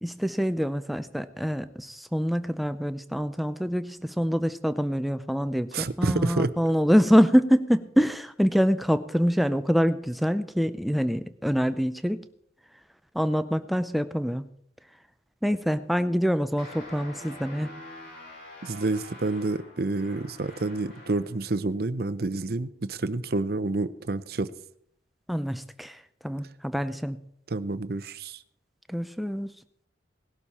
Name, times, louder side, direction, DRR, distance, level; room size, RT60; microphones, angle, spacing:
voice 1, 0.0-12.2 13.1-14.5 15.4-17.7 25.3-27.2 28.9-29.5, equal, ahead, 11 dB, 0.5 m, -25 dB
voice 2, 5.7-6.5 18.6-24.5 27.5-28.4, right 3 dB, 55° right, 14 dB, 0.7 m, -28 dB
sound 1, 16.6-21.4, left 1 dB, 60° left, 8.0 m, -45 dB
18.5 x 12.0 x 4.3 m, 0.68 s
head